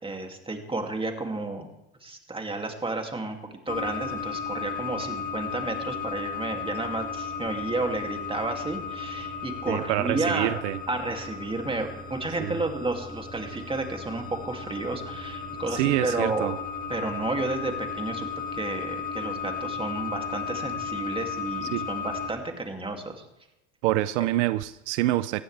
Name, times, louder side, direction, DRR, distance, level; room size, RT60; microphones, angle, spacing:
voice 1, 0.0-1.7 2.0-3.4 3.7-10.6 10.9-16.5 16.9-23.2, right 2 dB, 15° right, 3 dB, 2.6 m, -31 dB
sound 1, 3.7-22.3, left 5 dB, 25° left, 2.3 m, -35 dB
voice 2, 9.7-10.8 12.4-12.6 15.7-16.6 21.7-21.9 23.8-25.4, right 16 dB, 85° right, 15 dB, 0.6 m, -26 dB
19.0 x 14.5 x 3.4 m, 0.89 s
supercardioid pair, 85°, 35 cm